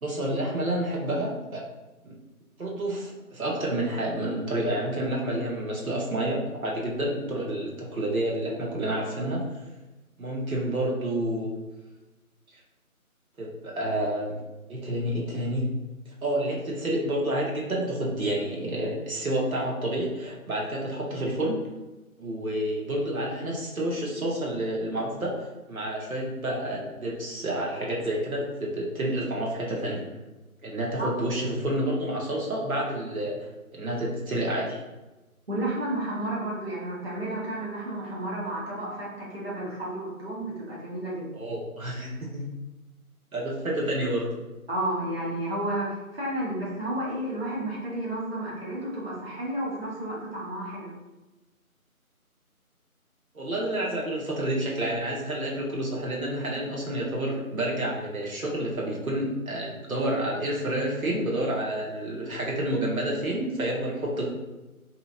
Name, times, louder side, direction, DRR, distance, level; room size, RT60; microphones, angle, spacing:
voice 1, 0.0-1.6 2.0-2.1 2.6-9.7 10.2-11.5 13.4-14.4 14.7-15.7 16.1-21.6 22.2-30.0 30.6-34.8 41.3-42.4 43.3-44.4 53.3-64.3, right 1 dB, 70° right, -3 dB, 1.0 m, -29 dB
voice 2, 35.5-41.3 44.7-50.9, right 1 dB, 40° right, -6 dB, 0.9 m, -32 dB
3.9 x 2.8 x 2.4 m, 1.1 s
figure-of-eight pair, 170°, 44 cm